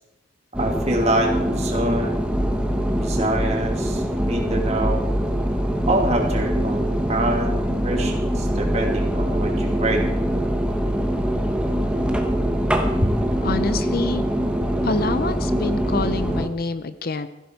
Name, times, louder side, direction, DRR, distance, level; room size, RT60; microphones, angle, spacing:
sound 1, 0.5-16.5, equal, 5° right, 1.2 m, -23 dB
voice 1, 0.6-2.3 3.0-5.1 5.9-10.0 13.0-13.2, right 1 dB, 30° right, 1 dB, 2.6 m, -25 dB
voice 2, 13.4-14.2 14.8-17.3, left 3 dB, 45° left, 12 dB, 0.6 m, -26 dB
16.5 x 15.0 x 4.6 m, 0.97 s
head